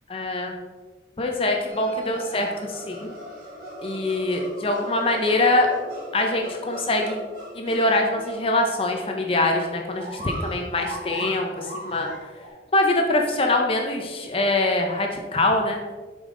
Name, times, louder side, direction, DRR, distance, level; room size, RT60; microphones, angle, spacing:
voice 1, 0.1-0.5 1.2-3.1 3.8-5.7 6.1-7.2 7.6-12.1 12.7-15.8, left 2 dB, 30° left, 2 dB, 0.6 m, -23 dB
sound 1, 1.7-12.5, equal, 50° right, 2.1 m, -39 dB
7.0 x 5.3 x 3.8 m, 1.4 s
head